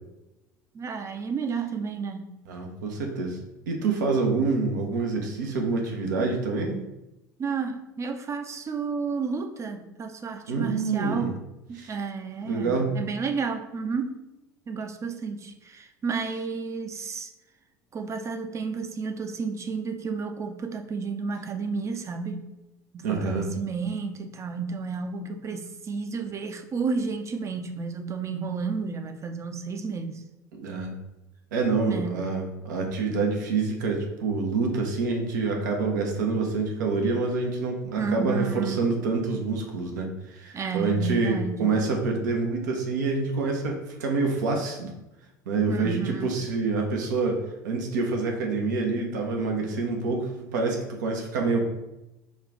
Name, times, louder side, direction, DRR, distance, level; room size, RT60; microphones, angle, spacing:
voice 1, 0.7-2.3 7.4-11.4 11.7-14.2 14.7-17.3 17.9-22.4 22.9-30.2 31.9-32.3 38.0-38.9 40.5-41.8 45.7-46.3, right 5 dB, 30° right, 7 dB, 0.6 m, -31 dB
voice 2, 2.5-3.4 3.7-6.8 10.5-11.3 11.8-11.9 12.5-12.9 23.0-23.5 30.6-30.9 31.5-44.9 45.5-51.6, right 3 dB, 75° right, 2 dB, 0.8 m, -27 dB
5.3 x 2.4 x 3.8 m, 0.94 s
hypercardioid pair, 70°, 10 cm